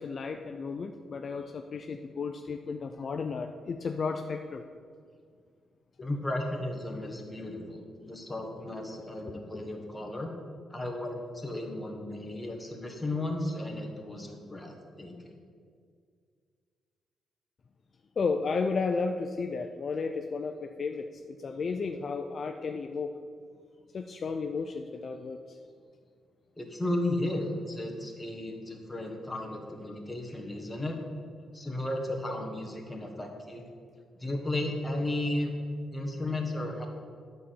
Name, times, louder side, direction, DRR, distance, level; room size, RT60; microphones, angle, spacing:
voice 1, 0.0-4.6 9.3-9.6 18.2-23.1 23.9-25.6, left 4 dB, 40° left, 5 dB, 0.4 m, -33 dB
voice 2, 6.0-10.3 10.7-15.3 26.6-30.9 31.5-33.6 34.2-35.5 35.9-36.9, left 1 dB, 10° left, 1 dB, 1.3 m, -34 dB
11.0 x 4.2 x 7.6 m, 2.1 s
cardioid pair, 150°, 0 cm